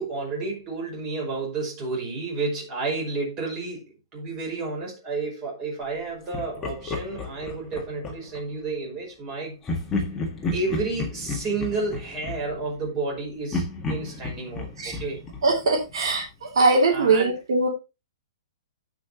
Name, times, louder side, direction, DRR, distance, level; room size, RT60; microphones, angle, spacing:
voice 1, 0.0-9.6 10.5-15.2 16.9-17.4, right 3 dB, 25° right, 5.3 m, -31 dB
Laughter, 6.3-8.5 9.6-13.1 13.5-16.3, left 3 dB, 15° left, 1.7 m, -32 dB
voice 2, 15.4-17.7, right 3 dB, 80° right, 2.9 m, -21 dB
16.5 x 5.5 x 2.9 m
hypercardioid pair, 165°, 3 cm